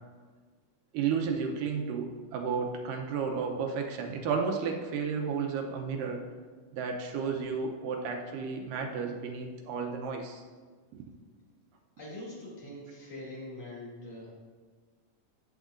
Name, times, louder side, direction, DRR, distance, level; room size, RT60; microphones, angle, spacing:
voice 1, 0.9-6.2 6.7-10.4 10.9-11.0, right 5 dB, 85° right, 3 dB, 2.3 m, -32 dB
voice 2, 12.0-14.3, left 1 dB, 50° left, -6 dB, 3.5 m, -43 dB
11.5 x 8.1 x 2.5 m, 1.5 s
omnidirectional pair, 3.9 m